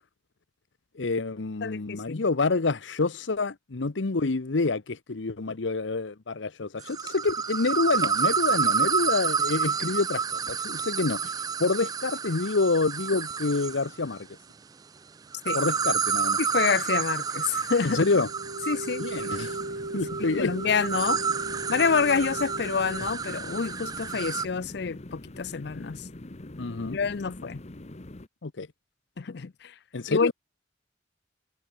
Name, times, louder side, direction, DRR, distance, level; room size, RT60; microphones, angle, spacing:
voice 1, 0.9-11.3 11.6-14.3 15.5-16.4 17.8-18.3 19.0-19.6 19.9-20.5 26.6-27.0 28.4-28.7 29.9-30.3, left 3 dB, 80° left, 0.9 m, -27 dB
voice 2, 1.6-2.2 15.5-15.6 16.4-18.0 18.7-19.0 20.2-21.2 21.7-26.0 26.9-27.6 29.2-29.7 30.1-30.3, left 5 dB, 60° left, 0.5 m, -27 dB
sound 1, 6.8-13.9 15.3-24.5, right 6 dB, 20° right, 0.3 m, -29 dB
sound 2, 17.7-28.3, left 1 dB, 35° left, 1.0 m, -44 dB
sound 3, 18.1-23.1, right 2 dB, 80° right, 1.3 m, -37 dB
head